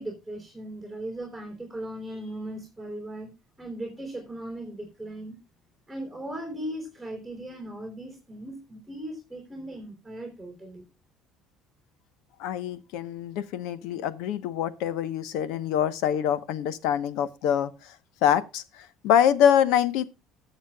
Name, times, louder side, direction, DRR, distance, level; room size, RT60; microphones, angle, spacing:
voice 1, 0.0-3.3 3.6-5.4 5.9-10.8, right 1 dB, 5° left, 3.6 m, -38 dB
voice 2, 12.4-17.7 18.2-18.6 19.0-20.0, left 9 dB, 75° left, 1.0 m, -24 dB
20.0 x 7.2 x 2.3 m
cardioid pair, 160°, 0 cm